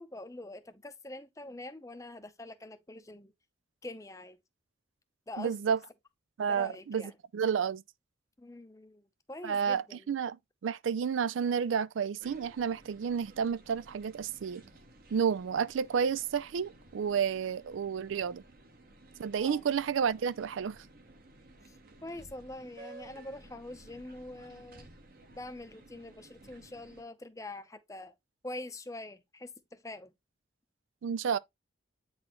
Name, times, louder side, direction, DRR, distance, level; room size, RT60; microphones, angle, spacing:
voice 1, 0.0-3.3 3.8-4.4 5.3-5.6 6.5-7.1 8.4-10.1 19.4-19.7 21.7-24.9 25.4-28.1 28.4-30.1, left 2 dB, 15° left, 0.6 m, -45 dB
voice 2, 5.4-5.8 6.4-7.8 9.4-14.6 15.1-18.4 19.2-20.8 31.0-31.4, right 7 dB, 85° right, 0.4 m, -31 dB
sound 1, 12.2-27.0, right 2 dB, 50° right, 1.0 m, -55 dB
8.6 x 4.1 x 3.0 m
head